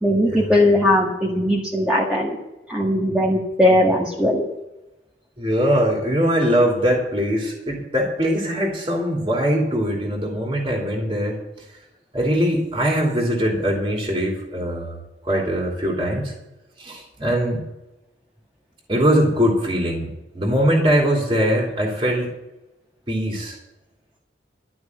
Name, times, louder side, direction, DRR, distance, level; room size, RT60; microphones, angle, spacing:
voice 1, 0.0-2.4 2.7-4.4, left 1 dB, 5° right, -4 dB, 1.7 m, -19 dB
voice 2, 5.4-11.4 12.1-16.3 16.8-17.6 18.9-20.1 20.3-22.3 23.1-23.6, equal, 30° right, -1 dB, 2.8 m, -21 dB
12.5 x 6.1 x 9.6 m, 0.97 s
head